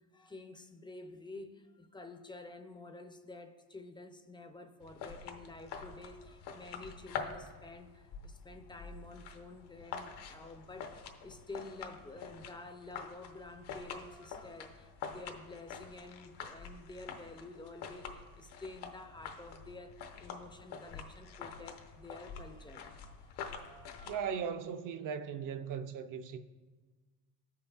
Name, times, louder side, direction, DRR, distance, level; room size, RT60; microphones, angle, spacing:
voice 1, 0.1-24.4, left 3 dB, 15° left, 0.3 m, -50 dB
sound 1, 4.8-24.2, left 6 dB, 85° left, 0.9 m, -46 dB
voice 2, 24.0-26.4, right 7 dB, 55° right, 0.5 m, -38 dB
15.5 x 5.5 x 2.3 m
cardioid pair, 145°, 38 cm